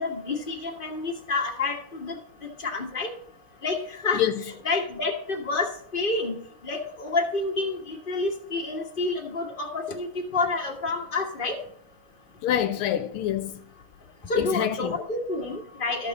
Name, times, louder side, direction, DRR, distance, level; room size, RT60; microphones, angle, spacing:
voice 1, 0.0-2.2 2.4-3.1 3.6-6.3 6.6-11.6 14.3-16.1, left 3 dB, 30° left, 1.3 m, -29 dB
voice 2, 12.4-13.6 14.4-15.0, left 10 dB, 85° left, 1.5 m, -26 dB
13.5 x 5.5 x 4.0 m
omnidirectional pair, 2.3 m